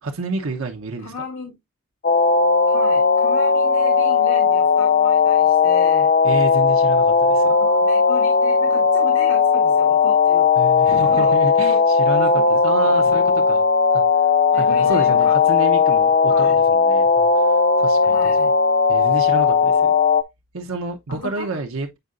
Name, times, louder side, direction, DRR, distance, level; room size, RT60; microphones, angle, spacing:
voice 1, 0.0-1.1 6.2-7.6 10.6-13.6 13.9-14.0 14.5-18.2 18.9-19.9 20.5-22.0, right 3 dB, 75° right, 0.9 m, -29 dB
voice 2, 1.0-1.5 2.7-6.1 7.6-10.5 10.9-11.4 11.7-11.8 12.3-12.4 12.7-13.0 14.5-15.3 16.3-16.6 18.0-18.5 21.1-21.5, left 3 dB, 75° left, 1.4 m, -34 dB
sound 1, 2.0-20.2, left 5 dB, 40° left, 0.4 m, -17 dB
7.9 x 4.7 x 2.5 m
head